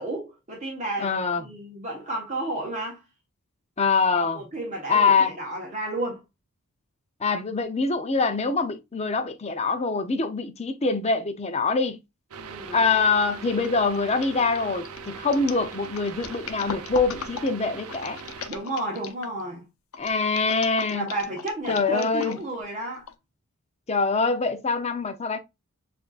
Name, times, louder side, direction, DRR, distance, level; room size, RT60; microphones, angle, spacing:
voice 1, 0.0-1.1 1.4-3.0 4.1-6.2 12.4-12.8 18.5-19.7 20.9-23.1, right 1 dB, 35° right, 1.2 m, -32 dB
voice 2, 1.0-1.4 3.8-4.4 4.9-5.3 7.2-12.0 12.7-18.2 20.0-21.1 21.7-22.4 23.9-25.4, left 4 dB, 30° left, 0.6 m, -24 dB
sound 1, 12.3-18.5, right 6 dB, 90° right, 0.6 m, -40 dB
sound 2, 13.0-13.2 13.6-19.4 19.9-22.6 23.1-23.2, left 6 dB, 70° left, 0.6 m, -39 dB
6.8 x 2.6 x 2.4 m
head